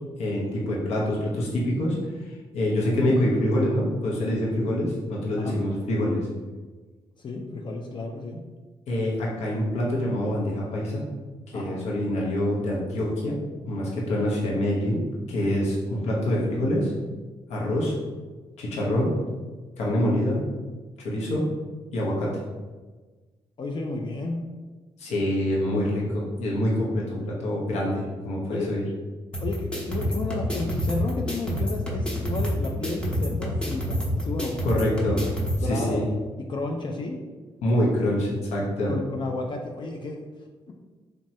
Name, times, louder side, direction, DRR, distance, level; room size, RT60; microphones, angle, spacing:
voice 1, 0.2-2.0 2.5-6.3 8.9-11.1 11.5-13.4 13.7-15.0 15.3-16.9 17.5-17.9 18.6-19.1 19.8-20.4 21.0-21.4 21.9-22.4 25.0-28.8 34.6-35.2 35.6-36.0 37.6-38.9, left 1 dB, 75° left, -3 dB, 0.7 m, -25 dB
voice 2, 7.2-8.4 11.5-11.9 23.6-24.4 28.5-28.8 29.4-34.8 35.6-36.1 36.4-37.2 38.9-40.3 40.7-40.8, left 2 dB, 45° left, 2 dB, 0.4 m, -32 dB
sound 1, 29.3-35.6, equal, 10° left, 0.8 m, -28 dB
2.9 x 2.2 x 2.7 m, 1.3 s
supercardioid pair, 55°, 11 cm